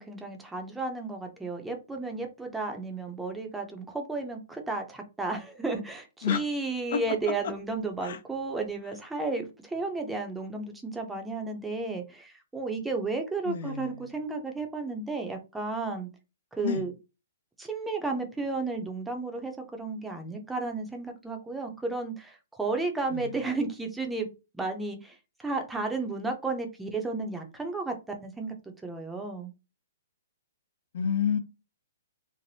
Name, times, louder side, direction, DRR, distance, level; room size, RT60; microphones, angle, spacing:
voice 1, 0.0-16.1 16.6-16.9 17.6-24.3 24.5-28.5 28.8-29.5, right 3 dB, 5° right, 0.6 m, -33 dB
voice 2, 13.5-13.9 16.6-16.8 23.1-23.3 30.9-31.4, left 7 dB, 60° left, 0.5 m, -28 dB
3.2 x 2.1 x 2.6 m
hypercardioid pair, 140°, 0 cm